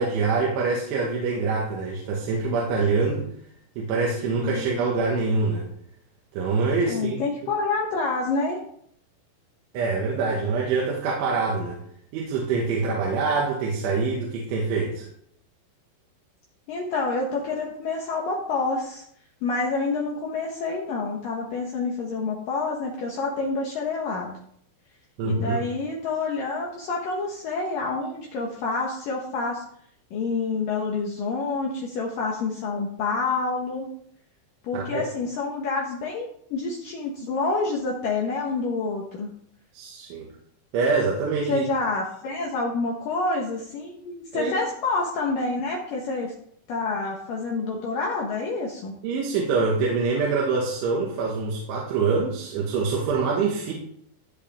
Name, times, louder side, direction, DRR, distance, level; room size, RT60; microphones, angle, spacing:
voice 1, 0.0-3.3 3.8-5.7 6.3-7.2 9.7-11.8 12.1-15.1 25.2-25.6 34.7-35.1 39.7-40.3 40.7-41.6 44.3-44.5 49.0-53.7, right 4 dB, 85° right, -3 dB, 4.2 m, -25 dB
voice 2, 4.4-4.7 6.9-8.6 16.7-19.0 19.4-24.4 25.2-29.6 30.1-33.9 34.6-39.3 41.5-46.3 46.7-48.9, left 3 dB, 65° left, -1 dB, 2.4 m, -28 dB
16.0 x 7.8 x 3.6 m, 0.67 s
omnidirectional pair, 5.4 m